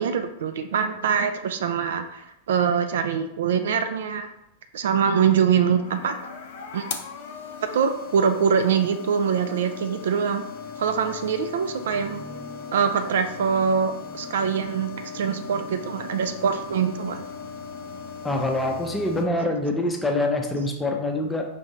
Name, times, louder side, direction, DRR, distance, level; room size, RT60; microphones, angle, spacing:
voice 1, 0.0-4.3 4.7-6.2 6.7-6.8 7.7-10.4 10.8-12.2 12.7-17.2, right 7 dB, 60° right, 8 dB, 0.3 m, -24 dB
sound 1, 5.7-19.2, left 6 dB, 55° left, 0.5 m, -38 dB
sound 2, 9.7-19.6, equal, 35° right, 0.8 m, -47 dB
voice 2, 18.2-21.5, left 1 dB, 10° left, 2 dB, 0.6 m, -25 dB
5.1 x 2.6 x 2.8 m, 0.81 s
figure-of-eight pair, 90°, 0 cm